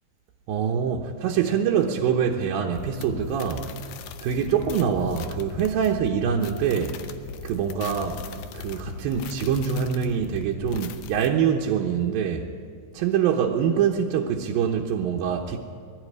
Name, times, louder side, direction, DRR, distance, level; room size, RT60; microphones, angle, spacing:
voice 1, 0.5-3.7 4.2-7.0 7.4-8.2 8.5-12.5 12.9-15.6, right 7 dB, 70° right, -1 dB, 2.4 m, -24 dB
sound 1, 2.7-11.3, left 6 dB, 80° left, 1.9 m, -39 dB
21.5 x 12.5 x 9.5 m, 2.3 s
omnidirectional pair, 5.0 m